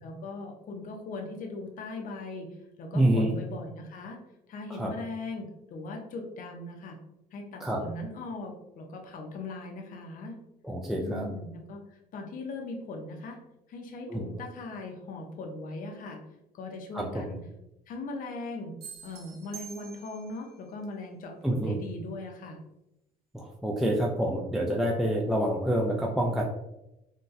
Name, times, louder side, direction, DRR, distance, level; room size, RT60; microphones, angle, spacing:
voice 1, 0.0-4.2 4.5-7.0 7.3-10.3 11.0-13.4 13.7-16.2 16.5-17.4 17.9-18.7 19.0-22.6, left 2 dB, 55° left, 2 dB, 0.6 m, -39 dB
voice 2, 2.9-3.3 4.7-4.9 7.6-7.9 10.6-11.3 14.1-14.2 16.9-17.2 21.4-21.8 23.3-26.4, right 1 dB, ahead, -1 dB, 0.3 m, -27 dB
sound 1, 18.8-20.5, right 6 dB, 70° right, 0.8 m, -46 dB
3.9 x 2.2 x 2.5 m, 0.88 s
cardioid pair, 110°, 17 cm